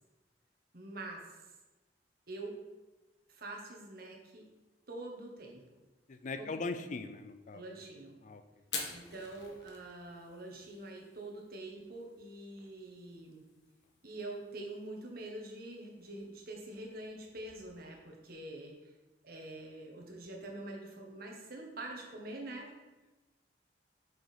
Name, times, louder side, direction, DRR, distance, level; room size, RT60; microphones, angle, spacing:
voice 1, 0.7-1.4 2.3-2.6 3.3-4.4 4.9-5.6 6.3-6.7 7.5-8.2 8.9-13.4 14.0-18.9 19.2-22.7, right 2 dB, 60° right, 0 dB, 1.5 m, -45 dB
voice 2, 6.1-7.6 8.2-8.4, left 3 dB, 45° left, 9 dB, 0.5 m, -39 dB
Fire, 8.6-17.8, left 5 dB, 75° left, 1.2 m, -49 dB
6.3 x 4.9 x 5.1 m, 1.1 s
head